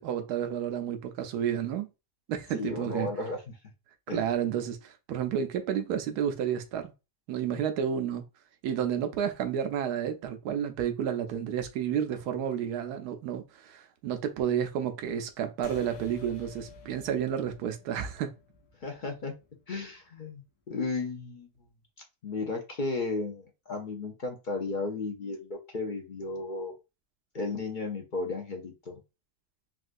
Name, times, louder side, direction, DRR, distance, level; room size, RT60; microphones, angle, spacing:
voice 1, 0.0-1.9 2.3-3.1 4.1-6.9 7.3-8.2 8.6-18.3, right 9 dB, 90° right, 1.1 m, -31 dB
voice 2, 2.5-3.6 4.1-4.2 18.8-19.3 19.7-20.4 20.7-21.5 22.2-26.7 27.3-29.0, left 3 dB, 55° left, 0.5 m, -34 dB
sound 1, 15.6-20.4, left 4 dB, 90° left, 1.2 m, -50 dB
3.7 x 2.4 x 2.5 m
omnidirectional pair, 1.6 m